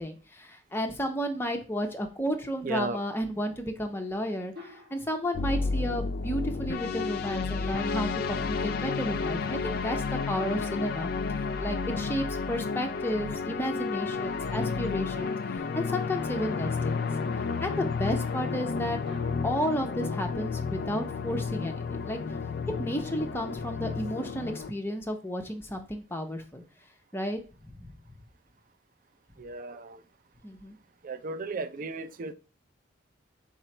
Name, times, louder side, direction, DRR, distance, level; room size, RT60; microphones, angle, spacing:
voice 1, 0.0-11.1 11.6-17.1 17.3-19.0 19.4-22.4 22.8-26.6 27.1-27.9 30.4-30.8, equal, 10° left, 0.6 m, -32 dB
voice 2, 2.6-3.0 29.4-30.0 31.0-32.3, right 3 dB, 45° right, 0.4 m, -35 dB
sound 1, 4.5-5.6 9.9-11.5 15.1-16.3 19.1-19.5, left 4 dB, 60° right, 1.7 m, -50 dB
sound 2, 5.3-24.7, left 4 dB, 55° left, 0.3 m, -31 dB
3.8 x 3.1 x 4.3 m
head